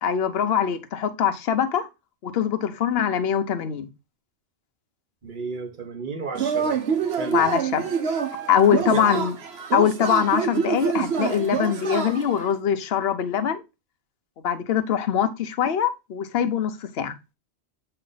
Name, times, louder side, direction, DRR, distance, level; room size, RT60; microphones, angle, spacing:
voice 1, 0.0-1.9 2.2-3.9 7.3-7.9 8.5-9.4 9.7-13.6 14.4-17.1, left 8 dB, 65° left, 0.9 m, -23 dB
voice 2, 5.2-6.8 7.1-7.4 8.9-9.0, right 5 dB, 45° right, 1.3 m, -32 dB
Yell / Cheering, 6.3-12.5, right 6 dB, 65° right, 1.1 m, -26 dB
7.9 x 3.3 x 3.8 m
omnidirectional pair, 1.2 m